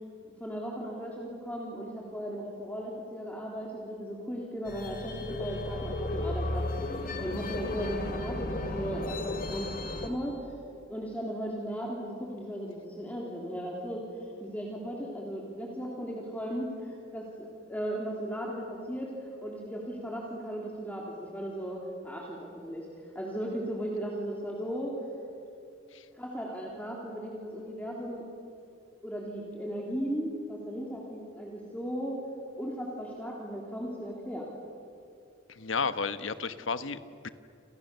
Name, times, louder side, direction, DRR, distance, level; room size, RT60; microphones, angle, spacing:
voice 1, 0.2-6.9 7.2-10.5 10.9-22.9 23.1-24.9 26.1-28.2 29.0-32.2 32.6-34.5, equal, 10° left, -2 dB, 3.2 m, -36 dB
sound 1, 4.7-10.1, left 2 dB, 45° left, 2.7 m, -34 dB
voice 2, 35.5-37.3, left 5 dB, 80° left, 12 dB, 1.2 m, -33 dB
29.5 x 28.5 x 6.9 m, 2.6 s
head